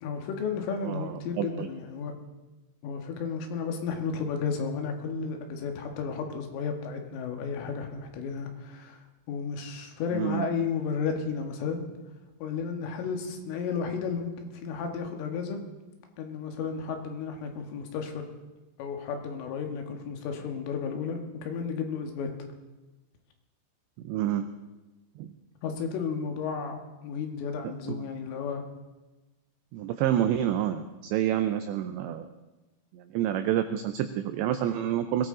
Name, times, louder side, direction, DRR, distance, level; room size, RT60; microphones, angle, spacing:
voice 1, 0.0-2.1 2.8-9.0 9.3-11.9 12.4-15.6 16.2-18.3 18.8-22.3 25.6-28.6, left 5 dB, 75° left, 4 dB, 4.0 m, -33 dB
voice 2, 0.8-1.7 10.1-10.5 24.0-24.5 25.2-25.3 27.9-28.1 29.7-32.3 32.9-35.3, right 11 dB, 90° right, 9 dB, 2.5 m, -28 dB
22.0 x 17.0 x 3.9 m, 1.1 s
omnidirectional pair, 5.9 m